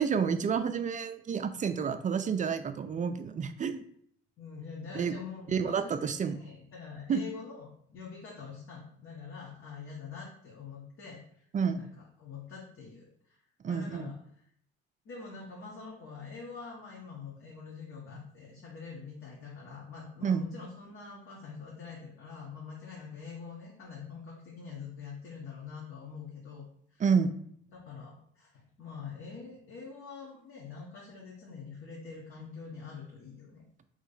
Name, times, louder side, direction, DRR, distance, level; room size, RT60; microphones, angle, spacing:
voice 1, 0.0-3.8 4.9-5.2 5.5-6.4 7.1-7.2 11.5-11.9 13.6-14.1 20.2-20.4 27.0-27.3, right 6 dB, 25° right, 9 dB, 0.4 m, -29 dB
voice 2, 4.4-11.4 11.7-11.9 12.2-14.2 15.0-27.0 27.7-33.6, left 5 dB, 45° left, -3 dB, 1.1 m, -45 dB
3.1 x 2.6 x 4.0 m, 0.64 s
hypercardioid pair, 70°, 29 cm